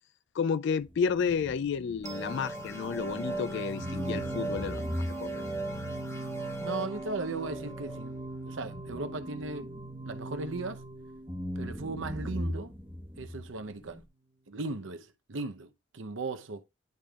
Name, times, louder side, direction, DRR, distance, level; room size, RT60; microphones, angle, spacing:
voice 1, 0.4-5.3, left 6 dB, 65° left, 0.3 m, -31 dB
sound 1, 0.8-3.4 3.8-10.9 11.3-14.1, equal, 10° right, 1.2 m, -40 dB
sound 2, 2.0-9.3, right 2 dB, 15° left, 1.5 m, -39 dB
sound 3, 2.1-13.0, right 2 dB, 35° right, 0.9 m, -43 dB
voice 2, 6.6-8.2 8.5-9.7 10.1-10.8 11.6-12.7 13.2-14.0 14.5-16.6, right 3 dB, 75° right, 0.8 m, -37 dB
10.5 x 5.1 x 2.4 m
head